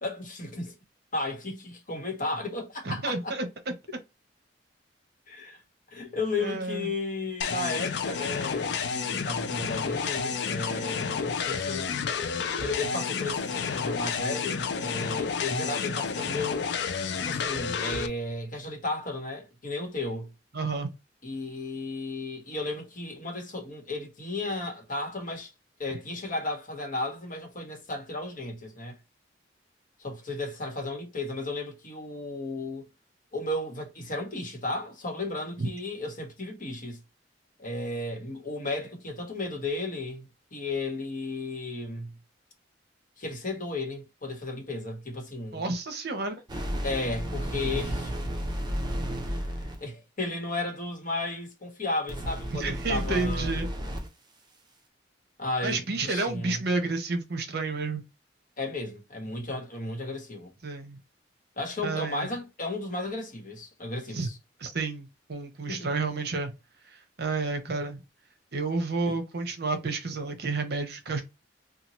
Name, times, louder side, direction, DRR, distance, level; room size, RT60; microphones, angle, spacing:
voice 1, 0.0-0.7 1.1-3.4 5.3-5.6 5.9-11.9 12.6-16.7 17.2-20.3 21.2-25.5 25.8-29.0 30.0-32.9 33.3-37.0 37.6-42.1 43.2-45.6 46.8-48.1 49.2-53.6 55.4-56.6 58.6-60.5 61.6-64.4 65.7-65.9 69.1-69.2, left 2 dB, 45° left, 1.2 m, -34 dB
voice 2, 2.8-3.5 6.4-6.9 20.5-20.9 35.6-35.7 45.5-46.4 52.5-53.7 55.6-58.0 60.6-61.0 61.8-62.3 64.1-64.3 64.6-66.5 67.2-68.0 68.5-71.2, right 3 dB, 60° right, 0.8 m, -30 dB
sound 1, 7.4-18.1, left 6 dB, 65° left, 0.4 m, -30 dB
sound 2, 46.5-49.8 52.1-54.1, equal, 25° right, 0.7 m, -32 dB
2.9 x 2.3 x 2.9 m
head